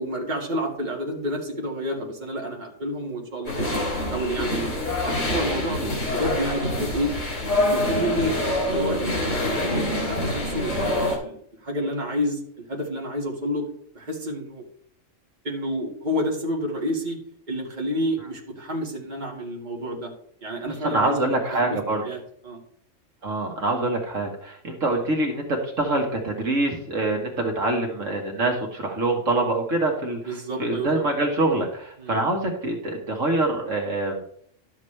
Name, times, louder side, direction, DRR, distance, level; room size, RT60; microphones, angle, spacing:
voice 1, 0.0-3.7 4.0-4.7 5.0-5.8 6.1-7.1 7.7-10.8 11.0-11.3 11.6-12.4 12.7-13.7 13.9-14.6 15.4-17.2 17.5-20.1 20.4-22.6 30.3-31.1 32.0-32.2, equal, 35° right, -1 dB, 2.0 m, -29 dB
sound 1, 3.5-11.2, left 1 dB, 70° left, 3.6 m, -25 dB
voice 2, 20.7-22.0 23.2-30.2 30.6-34.2, right 2 dB, 70° right, 1 dB, 1.9 m, -25 dB
12.0 x 7.4 x 3.3 m, 0.64 s
omnidirectional pair, 1.4 m